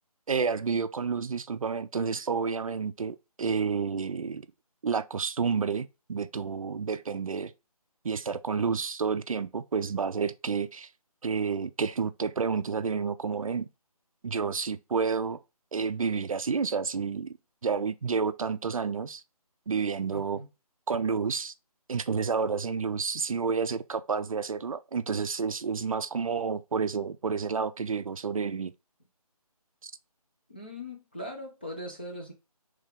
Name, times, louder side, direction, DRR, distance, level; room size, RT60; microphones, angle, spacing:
voice 1, 0.3-4.5 4.8-7.5 8.0-10.9 11.2-13.7 14.2-15.4 15.7-17.3 17.6-19.2 19.7-20.4 20.9-21.5 21.9-28.7 29.8-29.9, right 5 dB, 60° right, 0.4 m, -30 dB
voice 2, 20.1-20.5 30.5-32.3, left 1 dB, 15° left, 0.4 m, -40 dB
3.4 x 3.3 x 3.5 m
figure-of-eight pair, 165°, 20 cm